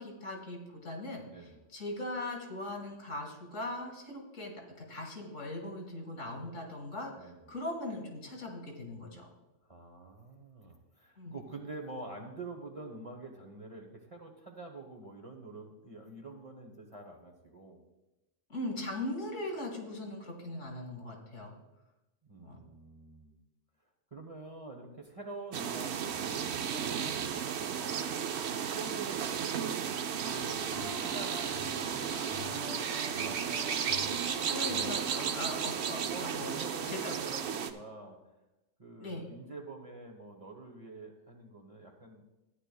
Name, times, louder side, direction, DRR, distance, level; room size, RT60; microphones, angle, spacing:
voice 1, 0.0-9.3 11.2-11.4 18.5-21.5 22.4-22.6 34.4-36.5 36.9-37.1 39.0-39.3, left 1 dB, 75° left, 1 dB, 2.3 m, -40 dB
voice 2, 1.3-1.6 7.2-7.5 9.7-17.8 22.3-23.3 24.1-30.0 30.3-32.9 36.0-38.2 38.8-42.2, right 3 dB, 30° right, 2 dB, 1.0 m, -47 dB
sound 1, 25.5-37.7, right 8 dB, 65° right, 0.8 m, -34 dB
sound 2, 30.2-35.4, equal, 35° left, 1.8 m, -44 dB
13.5 x 9.7 x 2.3 m, 1.0 s
omnidirectional pair, 1.3 m